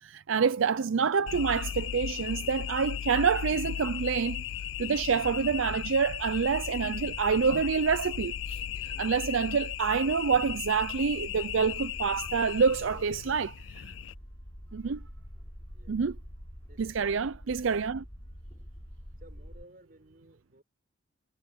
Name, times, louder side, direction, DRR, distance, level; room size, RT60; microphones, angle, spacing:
voice 1, 0.0-4.4 4.8-8.3 9.0-13.5 13.8-13.9 14.7-15.0 15.9-16.2 16.8-18.0, right 5 dB, 80° right, 0.5 m, -27 dB
sound 1, 1.3-14.1, left 10 dB, 70° left, 0.3 m, -36 dB
sound 2, 4.7-19.6, equal, 25° left, 7.3 m, -46 dB
voice 2, 8.2-9.1 12.5-13.3 15.7-16.0 16.7-17.1 19.2-20.6, right 1 dB, 45° right, 6.9 m, -57 dB
head